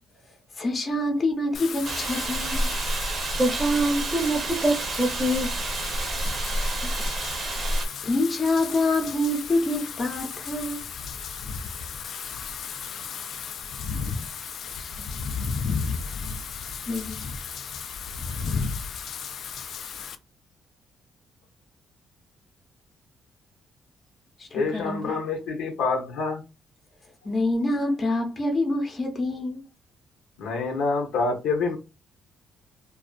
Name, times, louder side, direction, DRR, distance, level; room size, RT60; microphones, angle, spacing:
voice 1, 0.5-2.7 6.6-7.1 8.0-10.8 14.8-14.9 16.9-17.2 24.4-25.0 27.2-29.6, left 2 dB, 35° left, 0.6 m, -26 dB
Wind / Rain, 1.5-20.2, left 6 dB, 65° left, 0.3 m, -34 dB
sound 1, 1.8-7.9, right 2 dB, 55° right, 0.6 m, -29 dB
voice 2, 3.4-5.5, right 1 dB, 15° right, 0.6 m, -24 dB
voice 3, 24.5-26.4 30.4-31.8, left 4 dB, 90° left, 0.7 m, -26 dB
2.4 x 2.3 x 2.2 m
cardioid pair, 90°, 0 cm